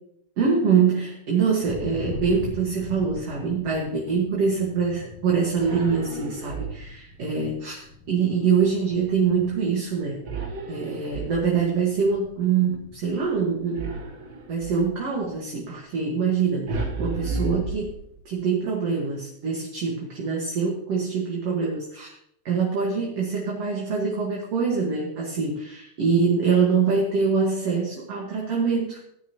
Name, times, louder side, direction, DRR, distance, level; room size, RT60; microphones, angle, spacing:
voice 1, 0.4-10.2 10.7-13.9 14.5-18.0 18.3-22.2 22.5-29.0, right 5 dB, 60° right, -2 dB, 2.6 m, -24 dB
Thunder, 1.6-14.5 14.8-15.4 15.7-17.2, left 2 dB, 65° left, 2.6 m, -43 dB
sound 1, 5.6-7.1 10.2-11.8 13.7-15.0 16.7-18.4, right 3 dB, 75° right, 0.7 m, -32 dB
17.0 x 9.6 x 2.9 m, 0.73 s
omnidirectional pair, 3.4 m